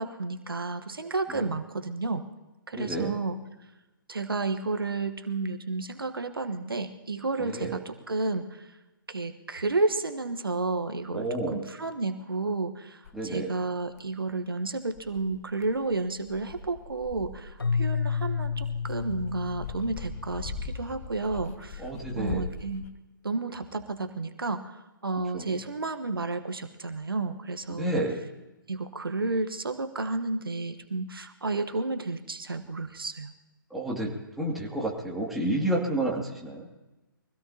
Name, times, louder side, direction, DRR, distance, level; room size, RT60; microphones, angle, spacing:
voice 1, 0.0-2.2 2.7-3.4 4.1-8.7 9.1-21.9 22.2-22.9 23.2-28.0 28.7-33.3, right 3 dB, 80° right, 7 dB, 1.3 m, -31 dB
voice 2, 2.7-3.1 7.4-7.8 11.1-11.6 13.1-13.5 21.8-22.4 25.3-25.6 27.8-28.2 33.7-36.7, right 1 dB, ahead, -3 dB, 2.4 m, -30 dB
Dog, 13.0-13.2 14.0-14.1 15.0-22.9, left 4 dB, 40° left, 1.2 m, -41 dB
Keyboard (musical), 17.6-20.7, left 5 dB, 85° left, 0.6 m, -31 dB
24.0 x 17.0 x 2.9 m, 1.1 s
figure-of-eight pair, 135°, 12 cm